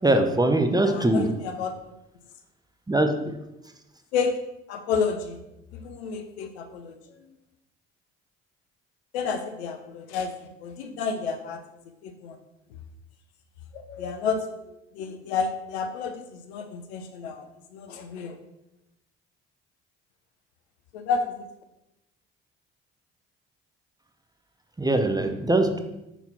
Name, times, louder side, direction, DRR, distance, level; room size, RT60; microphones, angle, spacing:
voice 1, 0.0-1.3 2.9-3.4 24.8-25.8, right 1 dB, 10° right, 6 dB, 0.7 m, -22 dB
voice 2, 0.8-1.7 4.1-4.4 4.7-5.4 5.7-7.2 9.1-10.3 10.6-11.6 12.0-12.4 13.7-17.5 17.7-18.4 20.9-21.5, left 5 dB, 85° left, 7 dB, 0.5 m, -30 dB
5.8 x 4.0 x 4.3 m, 0.91 s
hypercardioid pair, 50°, 32 cm